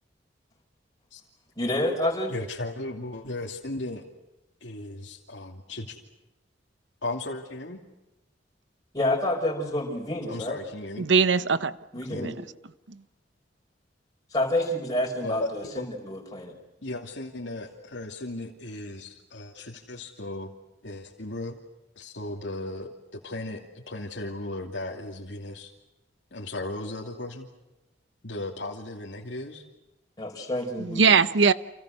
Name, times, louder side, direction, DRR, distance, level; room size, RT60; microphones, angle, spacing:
voice 1, 1.6-2.3 8.9-10.6 11.9-12.3 14.3-16.5 30.2-31.2, left 1 dB, 20° left, 5.8 m, -28 dB
voice 2, 2.3-4.0 4.6-6.0 7.0-7.8 10.3-11.1 12.1-12.3 15.2-15.5 15.7-15.9 16.8-20.5 20.8-21.6 22.0-25.7 26.3-27.5 28.2-29.6, left 2 dB, 85° left, 2.7 m, -36 dB
voice 3, 11.0-11.7 12.2-12.3 30.8-31.5, right 5 dB, 90° right, 0.9 m, -20 dB
30.0 x 28.5 x 6.5 m
head